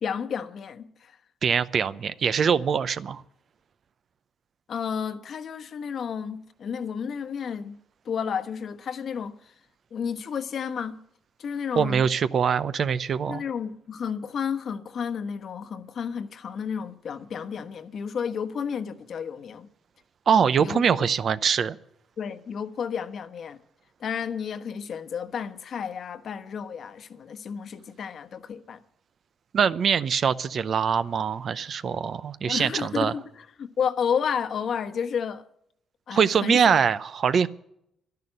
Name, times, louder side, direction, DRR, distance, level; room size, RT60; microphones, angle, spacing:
voice 1, 0.0-1.2 4.7-7.8 8.0-9.4 9.9-11.0 11.4-12.1 13.3-19.7 20.6-20.9 22.2-23.6 24.0-28.8 32.5-35.4 36.1-36.8, left 7 dB, 60° left, 1.1 m, -31 dB
voice 2, 1.4-3.2 11.8-13.4 20.3-21.8 29.5-33.1 36.1-37.5, right 7 dB, 55° right, 0.7 m, -23 dB
12.0 x 11.0 x 10.0 m
cardioid pair, 90°, 0 cm